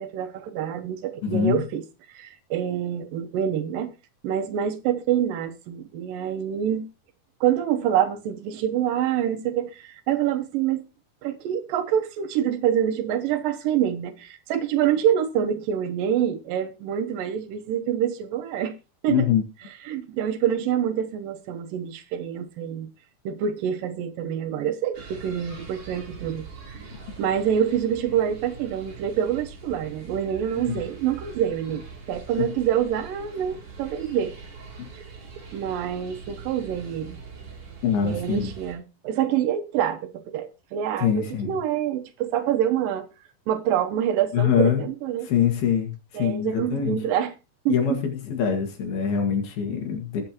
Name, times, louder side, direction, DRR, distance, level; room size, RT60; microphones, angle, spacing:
voice 1, 0.0-1.8 2.1-3.9 4.2-6.9 7.4-10.8 11.2-18.8 19.0-19.3 19.9-22.9 23.3-26.5 27.2-34.3 35.5-37.2 38.0-40.0 40.3-43.1 43.5-45.3 46.1-47.3 47.7-48.0, right 9 dB, 70° right, 2.6 m, -26 dB
voice 2, 1.2-1.6 19.1-19.4 30.7-30.8 32.4-32.5 34.8-34.9 37.8-38.5 41.0-41.5 44.3-44.8 45.2-47.0 47.7-50.2, left 8 dB, 85° left, 3.9 m, -24 dB
sound 1, 24.9-38.7, right 5 dB, 40° right, 3.8 m, -42 dB
21.0 x 7.8 x 3.0 m
omnidirectional pair, 4.3 m